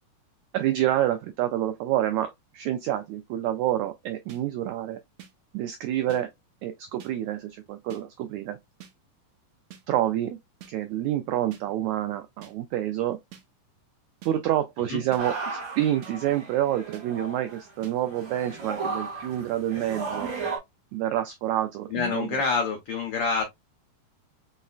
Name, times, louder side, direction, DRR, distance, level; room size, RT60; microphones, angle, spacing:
voice 1, 0.5-5.0 5.5-6.3 6.6-8.6 9.9-10.4 10.7-13.2 14.2-20.3 20.9-22.3, right 12 dB, 90° right, 1.6 m, -28 dB
sound 1, 4.3-4.4 5.2-5.3 6.1-6.2 7.0-7.1 7.9-8.0 8.8-8.9 9.7-9.8 10.6-10.7 11.5-11.6 12.4-12.5 13.3-13.4 14.2-14.3 15.1-15.2 16.0-16.1 16.9-17.0 17.8-17.9, right 10 dB, 70° right, 1.7 m, -46 dB
sound 2, 15.2-20.6, right 4 dB, 40° right, 1.9 m, -35 dB
voice 2, 21.9-23.4, left 5 dB, 90° left, 1.3 m, -27 dB
5.5 x 3.1 x 2.4 m
omnidirectional pair, 3.8 m